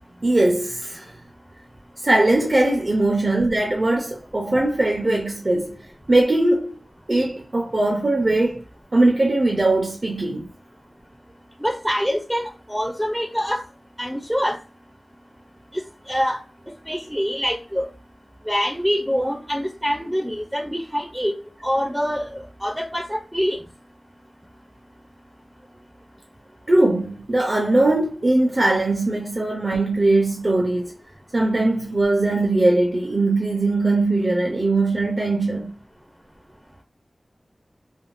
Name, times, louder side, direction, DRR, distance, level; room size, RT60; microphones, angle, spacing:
voice 1, 0.2-1.1 2.0-5.8 6.1-6.8 7.1-8.6 8.9-10.5 26.7-30.9 31.3-35.7, right 2 dB, 45° right, 0.6 m, -20 dB
voice 2, 11.6-13.6 14.0-14.6 15.7-16.4 16.9-17.9 18.5-21.3 21.6-23.6, equal, 5° right, 0.5 m, -25 dB
3.5 x 2.2 x 2.5 m
wide cardioid pair, 70°, 0 cm